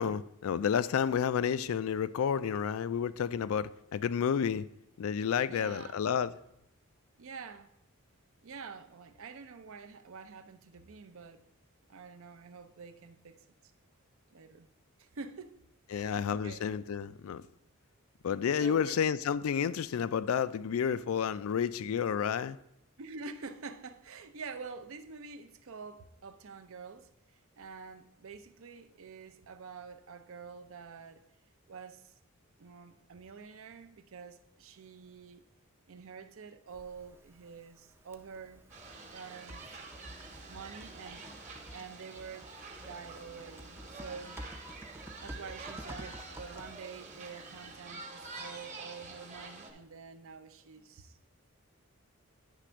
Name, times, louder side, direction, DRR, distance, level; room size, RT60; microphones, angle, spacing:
voice 1, 0.0-4.7 5.0-6.3 15.9-17.4 18.2-22.6, left 7 dB, 65° left, 0.3 m, -30 dB
voice 2, 5.5-6.0 7.2-7.7 8.4-11.4 11.9-13.4 14.3-14.7 15.0-15.5 15.9-16.7 18.6-19.0 23.0-27.1 27.6-31.2 31.7-32.1 32.6-35.4 35.9-38.6 39.1-39.6 40.5-42.5 42.8-44.4 45.2-51.2, right 5 dB, 65° right, 0.5 m, -47 dB
Typing, 36.7-47.7, right 1 dB, 10° right, 0.5 m, -51 dB
sound 1, 38.7-49.7, right 3 dB, 35° right, 1.1 m, -47 dB
9.9 x 3.3 x 6.1 m
head